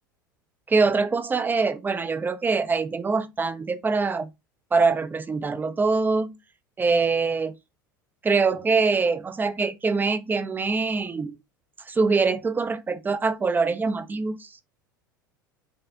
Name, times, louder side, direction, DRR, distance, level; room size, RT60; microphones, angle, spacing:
voice 1, 0.7-4.3 4.7-6.4 6.8-7.6 8.2-11.3 11.9-14.5, right 4 dB, 15° right, 0.7 m, -24 dB
9.2 x 3.3 x 3.5 m
figure-of-eight pair, 75°, 11 cm